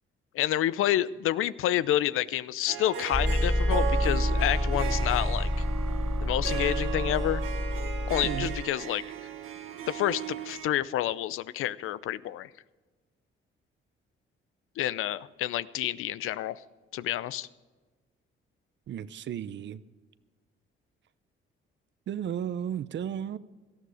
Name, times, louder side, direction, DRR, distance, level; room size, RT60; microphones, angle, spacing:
voice 1, 0.3-5.5 6.2-7.4 8.1-9.0 9.9-12.5 14.8-16.6 16.9-17.5, left 13 dB, 80° left, 17 dB, 0.6 m, -29 dB
Harp, 2.7-10.7, right 10 dB, 90° right, 1.6 m, -36 dB
sound 1, 3.1-8.6, left 1 dB, ahead, 0.5 m, -28 dB
voice 2, 8.2-8.5 18.9-19.8 22.1-23.4, right 9 dB, 60° right, 16 dB, 0.7 m, -34 dB
18.0 x 13.5 x 4.9 m, 1.3 s
cardioid pair, 95°, 21 cm